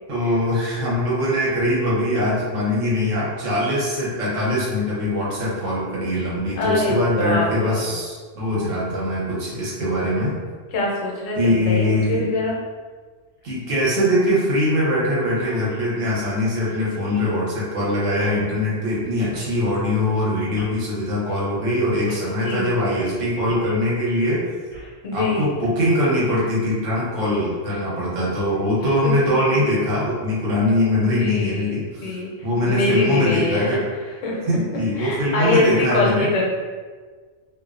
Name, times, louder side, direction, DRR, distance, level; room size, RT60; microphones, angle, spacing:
voice 1, 0.1-10.3 11.4-12.3 13.4-24.5 25.1-33.8 34.5-36.4, left 1 dB, 85° right, -7 dB, 1.2 m, -22 dB
voice 2, 6.6-7.7 10.7-12.6 22.4-22.8 25.0-25.5 29.2-29.3 30.9-31.7 32.0-32.3 32.7-33.8 34.2-34.4 35.0-36.5, left 2 dB, 90° left, -3 dB, 1.0 m, -23 dB
sound 1, 13.4-13.5 13.8-13.9 14.5-14.7 15.0-15.1 15.2-17.4 18.2-18.4 19.3-19.5 20.5-20.8 21.6-21.7 22.0-22.2 23.5-23.7 24.1-25.0 25.6-25.9, left 2 dB, 25° left, 1.3 m, -42 dB
2.6 x 2.1 x 2.4 m, 1.5 s
omnidirectional pair, 1.3 m